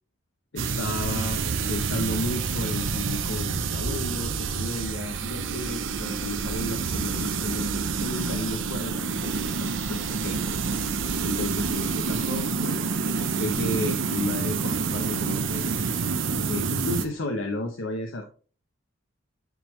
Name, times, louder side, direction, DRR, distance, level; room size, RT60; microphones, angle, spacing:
voice 1, 0.5-1.4 1.7-10.6 10.9-12.9 13.2-15.7 16.5-18.3, left 1 dB, 75° left, 4 dB, 0.8 m, -33 dB
sound 1, 0.6-17.0, right 5 dB, 75° right, 0.7 m, -28 dB
9.3 x 3.5 x 3.1 m, 0.37 s
head